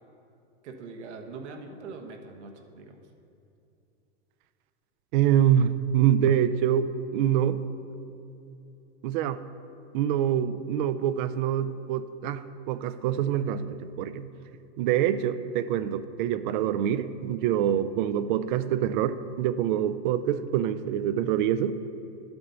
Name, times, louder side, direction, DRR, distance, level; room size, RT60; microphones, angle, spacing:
voice 1, 0.6-3.0, right 4 dB, 80° right, 3 dB, 1.4 m, -42 dB
voice 2, 5.1-7.6 9.0-9.4 9.9-14.3 14.8-21.8, right 10 dB, 45° right, 13 dB, 0.5 m, -25 dB
12.0 x 7.9 x 4.0 m, 2.7 s
supercardioid pair, 155°, 34 cm